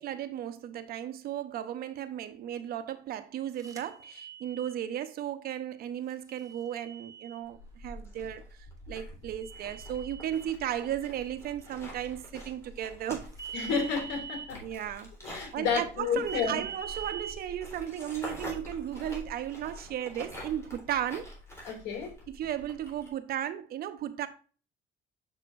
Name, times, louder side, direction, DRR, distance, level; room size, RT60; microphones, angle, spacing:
voice 1, 0.0-13.3 14.6-21.3 22.3-24.3, right 10 dB, 65° right, 0.9 m, -35 dB
sound 1, 3.6-4.7 6.3-7.4 9.4-10.5 13.3-14.5 16.3-17.3, right 7 dB, 20° right, 1.4 m, -43 dB
sound 2, 7.5-23.1, equal, 15° left, 3.6 m, -46 dB
voice 2, 13.5-14.6 15.2-16.6 21.6-22.1, left 5 dB, 85° left, 2.5 m, -31 dB
7.2 x 6.4 x 2.5 m
cardioid pair, 110°, 17 cm